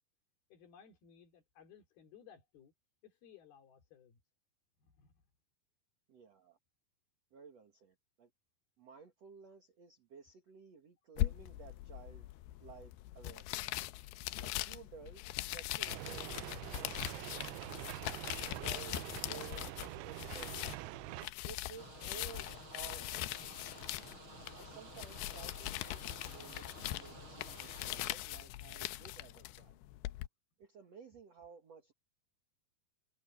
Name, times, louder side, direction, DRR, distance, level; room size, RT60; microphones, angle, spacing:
voice 1, 0.5-2.7 3.0-4.2 4.9-5.1, left 8 dB, 70° left, 5.1 m, -60 dB
voice 2, 6.1-6.6 7.3-8.3 8.8-12.3 12.6-13.8 14.4-16.3 16.7-17.7 18.5-20.7 21.4-23.5 24.5-29.8 30.6-31.9, right 6 dB, 50° right, 2.5 m, -55 dB
sound 1, 11.2-30.3, left 17 dB, 85° left, 2.6 m, -41 dB
sound 2, 15.9-21.3, right 21 dB, 85° right, 2.5 m, -45 dB
Stream, 21.8-28.1, right 2 dB, 30° right, 8.4 m, -53 dB
omnidirectional pair, 4.6 m